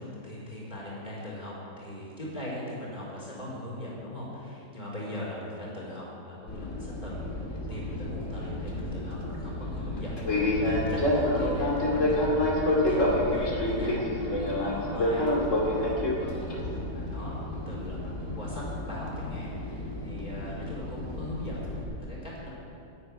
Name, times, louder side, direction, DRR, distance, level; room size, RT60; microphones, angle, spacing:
voice 1, 0.0-17.4 17.7-22.5, left 1 dB, 25° left, -6 dB, 4.2 m, -40 dB
Fixed-wing aircraft airplane, 6.5-21.8, left 1 dB, 45° left, 2.6 m, -29 dB
11.5 x 9.1 x 9.7 m, 2.8 s
omnidirectional pair, 1.9 m